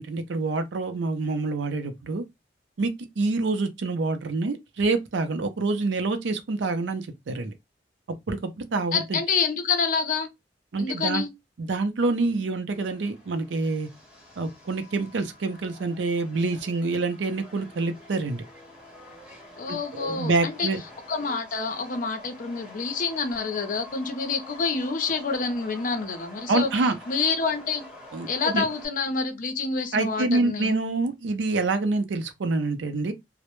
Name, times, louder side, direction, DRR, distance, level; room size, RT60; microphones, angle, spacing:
voice 1, 0.0-2.2 2.8-7.5 8.3-9.2 10.7-11.2 11.6-13.9 14.4-18.4 19.7-20.8 26.5-26.9 28.1-28.7 29.9-33.1, right 3 dB, 85° right, 0.5 m, -26 dB
voice 2, 8.9-10.3 10.8-11.3 19.6-20.7 21.1-26.7 27.1-27.8 28.3-30.7, left 4 dB, 50° left, 0.5 m, -27 dB
Subway metro underground, 12.7-28.9, left 1 dB, 5° right, 0.9 m, -47 dB
2.1 x 2.0 x 2.9 m
head